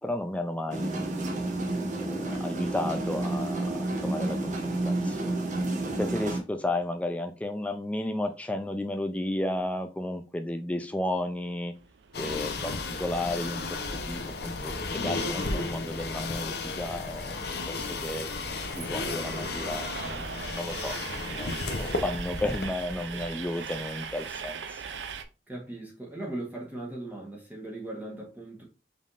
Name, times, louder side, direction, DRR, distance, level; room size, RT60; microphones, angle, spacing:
voice 1, 0.0-1.4 2.0-5.5 6.0-11.7 12.1-17.4 17.6-18.3 18.7-21.0 21.3-24.8, left 1 dB, 10° left, 0.4 m, -33 dB
sound 1, 0.7-6.4, right 2 dB, 45° right, 0.9 m, -30 dB
Train, 11.8-25.2, right 5 dB, 80° right, 0.5 m, -42 dB
sound 2, 12.1-22.7, left 3 dB, 65° left, 0.7 m, -34 dB
voice 2, 25.5-28.6, right 1 dB, 10° right, 1.2 m, -38 dB
5.2 x 3.4 x 2.5 m
head